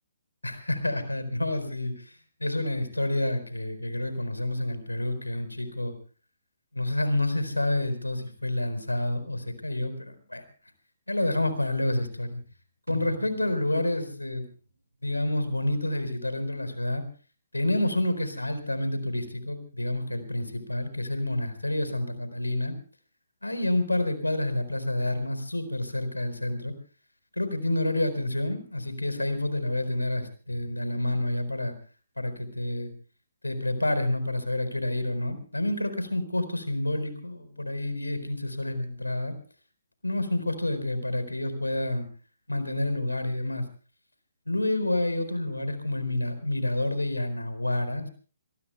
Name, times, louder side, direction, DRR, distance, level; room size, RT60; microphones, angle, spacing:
voice 1, 0.4-5.9 6.7-10.4 11.1-12.4 12.9-14.5 15.0-17.0 17.5-22.7 23.4-26.7 27.4-31.7 32.2-32.9 33.4-39.3 40.0-42.1 42.5-43.7 44.5-48.1, left 1 dB, 80° left, 11 dB, 4.3 m, -29 dB
sound 1, 12.9-15.0 15.4-15.5, right 3 dB, 70° right, 2.0 m, -43 dB
27.0 x 22.0 x 2.2 m, 0.39 s
figure-of-eight pair, 130°, 0 cm